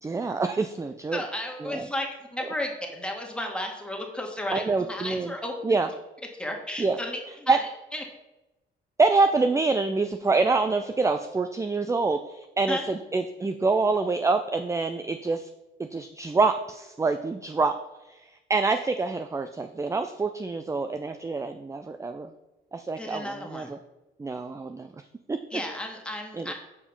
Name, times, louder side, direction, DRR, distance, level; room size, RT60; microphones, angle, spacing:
voice 1, 0.0-1.2 1.6-1.8 2.4-2.5 4.5-5.3 5.6-5.9 6.8-7.0 7.5-7.6 9.0-15.5 15.8-17.8 18.1-22.3 22.7-23.8 24.2-24.9 25.3-25.4 26.3-26.5, right 3 dB, 15° right, 8 dB, 0.4 m, -26 dB
voice 2, 1.1-2.1 2.3-5.8 6.4-7.6 7.9-8.0 12.7-12.8 23.0-23.7 25.5-26.5, left 1 dB, 5° left, 1 dB, 1.7 m, -33 dB
7.1 x 4.9 x 5.3 m, 0.99 s
cardioid pair, 90°, 20 cm